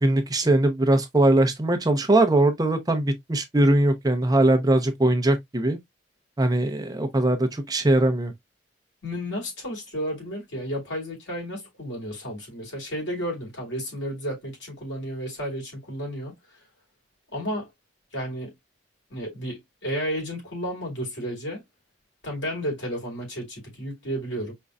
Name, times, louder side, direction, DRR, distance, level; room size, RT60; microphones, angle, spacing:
voice 1, 0.0-5.8 6.4-8.3, right 1 dB, 20° right, 0.8 m, -21 dB
voice 2, 9.0-16.3 17.3-17.7 18.1-18.5 19.1-21.6 22.2-24.5, equal, 90° left, 3.9 m, -32 dB
5.4 x 3.8 x 2.3 m
head